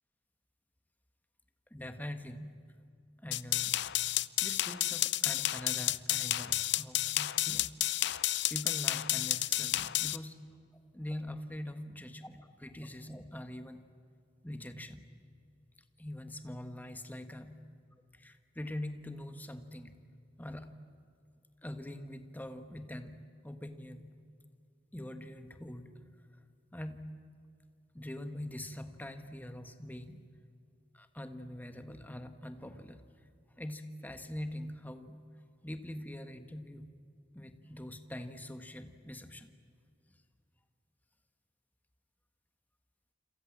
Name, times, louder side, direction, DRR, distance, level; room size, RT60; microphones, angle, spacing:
voice 1, 1.7-2.5 3.2-7.7 8.0-8.2 8.5-10.4 10.9-13.8 14.4-15.0 16.0-17.6 18.1-20.0 20.4-20.7 21.6-23.2 23.4-24.1 24.9-26.0 26.7-27.1 27.9-30.2 30.9-33.0 33.6-35.2 35.6-36.9 37.3-39.5, left 1 dB, 10° left, 7 dB, 1.5 m, -43 dB
sound 1, 3.3-10.2, left 15 dB, 65° left, 0.6 m, -31 dB
28.5 x 27.0 x 7.5 m, 2.3 s
head